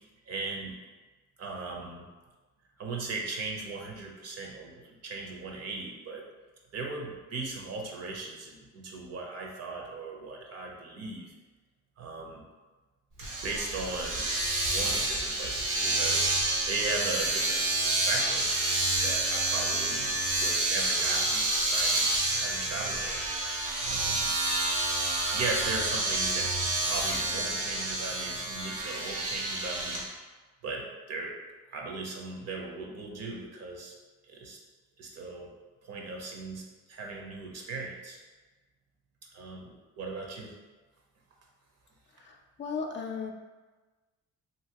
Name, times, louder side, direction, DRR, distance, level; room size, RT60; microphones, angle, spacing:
voice 1, 0.3-0.8 1.4-2.1 2.8-6.2 6.7-11.3 12.0-12.4 13.4-14.2 14.7-16.3 16.6-18.5 19.0-23.3 23.8-24.3 25.3-26.5 26.8-30.1 30.6-31.3 31.7-33.9 34.3-34.6 35.0-35.5 35.8-38.2 39.3-40.5, right 3 dB, 55° right, 0 dB, 0.7 m, -38 dB
Domestic sounds home sounds, 13.2-30.0, right 2 dB, 85° right, 0.9 m, -29 dB
voice 2, 42.1-43.3, left 5 dB, 40° left, 2 dB, 0.4 m, -36 dB
2.8 x 2.8 x 2.8 m, 1.3 s
cardioid pair, 90°, 30 cm